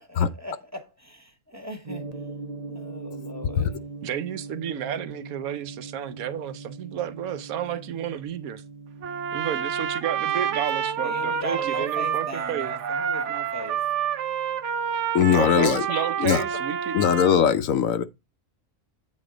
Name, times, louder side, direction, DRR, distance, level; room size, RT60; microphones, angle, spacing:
voice 1, 0.0-2.1 2.7-3.8 11.0-13.8, equal, 10° right, 1.4 m, -38 dB
Gong, 1.8-16.0, right 3 dB, 35° right, 0.7 m, -42 dB
voice 2, 4.0-8.6 9.3-12.7 15.3-17.0, right 10 dB, 85° right, 1.2 m, -31 dB
Trumpet, 9.0-17.4, right 8 dB, 60° right, 1.0 m, -28 dB
voice 3, 15.1-16.4 16.9-18.0, left 8 dB, 75° left, 1.1 m, -21 dB
8.6 x 4.1 x 4.9 m
omnidirectional pair, 1.5 m